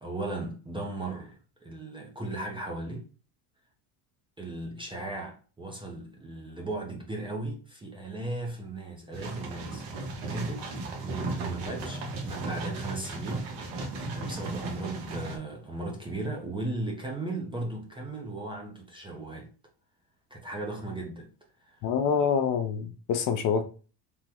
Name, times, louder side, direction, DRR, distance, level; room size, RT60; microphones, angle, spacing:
voice 1, 0.0-3.1 4.4-13.8 14.2-19.5 20.3-21.3 21.6-21.9, right 2 dB, 15° right, 0.4 m, -37 dB
sound 1, 9.1-15.4, right 2 dB, 80° right, 1.0 m, -36 dB
voice 2, 21.8-23.6, left 6 dB, 50° left, 0.4 m, -26 dB
3.6 x 2.0 x 2.8 m
cardioid pair, 135°, 43 cm